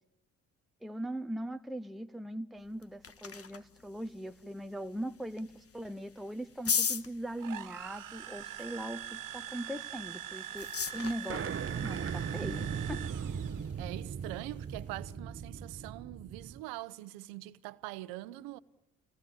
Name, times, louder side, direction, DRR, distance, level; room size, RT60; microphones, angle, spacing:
voice 1, 0.8-13.1, right 1 dB, ahead, 0.9 m, -40 dB
sound 1, 2.6-15.1, left 6 dB, 40° left, 1.5 m, -41 dB
sound 2, 7.4-13.7, right 11 dB, 60° right, 1.6 m, -43 dB
sound 3, 11.3-16.6, right 6 dB, 40° right, 1.1 m, -38 dB
voice 2, 13.8-18.6, right 17 dB, 90° right, 0.9 m, -43 dB
26.0 x 18.5 x 9.7 m
supercardioid pair, 55°, 35 cm